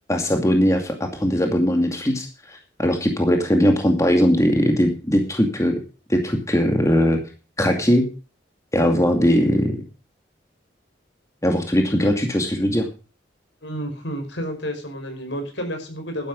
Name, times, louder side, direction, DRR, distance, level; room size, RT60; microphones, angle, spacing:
voice 1, 0.1-5.7 6.1-7.2 7.6-8.1 8.7-9.8 11.4-12.9, equal, 15° left, 4 dB, 2.4 m, -20 dB
voice 2, 13.6-16.3, equal, 75° left, 5 dB, 5.4 m, -30 dB
12.5 x 11.5 x 5.5 m, 0.33 s
head